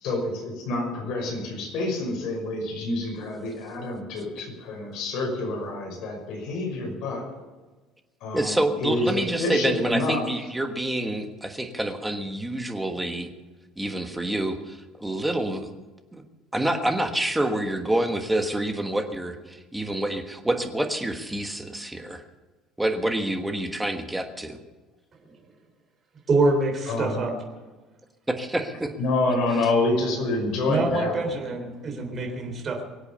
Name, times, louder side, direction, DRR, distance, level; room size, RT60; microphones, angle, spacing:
voice 1, 0.0-7.3 8.2-10.2 26.9-27.3 29.0-31.3, left 2 dB, 55° left, 1 dB, 5.9 m, -27 dB
voice 2, 8.3-13.3 13.8-15.7 16.1-16.2 16.5-22.2 22.8-24.6 28.3-28.9, right 1 dB, 5° right, 5 dB, 1.4 m, -27 dB
voice 3, 26.3-27.3 30.7-32.8, right 3 dB, 25° right, 3 dB, 3.6 m, -25 dB
23.0 x 8.2 x 6.9 m, 1.2 s
cardioid pair, 165°, 0 cm